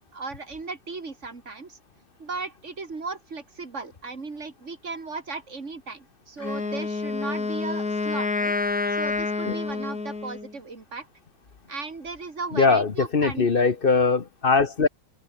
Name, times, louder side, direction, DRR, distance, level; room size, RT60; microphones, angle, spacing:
voice 1, 0.1-1.8 2.2-8.5 8.9-11.1 11.7-13.7 14.8-14.9, right 4 dB, 40° right, 2.8 m, -36 dB
Wind instrument woodwind instrument, 6.4-10.5, left 3 dB, 55° left, 4.0 m, -28 dB
voice 2, 12.5-14.9, left 4 dB, 35° left, 1.1 m, -21 dB
open air
omnidirectional pair, 1.9 m